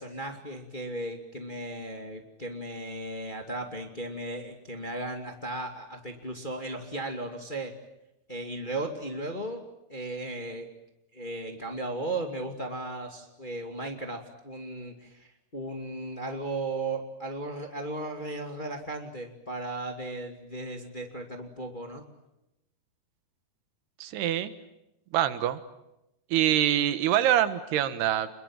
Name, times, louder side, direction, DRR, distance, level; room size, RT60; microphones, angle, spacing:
voice 1, 0.0-7.7 8.3-10.7 11.1-22.1, right 2 dB, 15° left, 3 dB, 1.8 m, -36 dB
voice 2, 24.0-24.5 25.1-25.6 26.3-28.3, right 11 dB, 90° right, 11 dB, 3.5 m, -25 dB
28.0 x 22.0 x 9.0 m, 0.90 s
omnidirectional pair, 4.5 m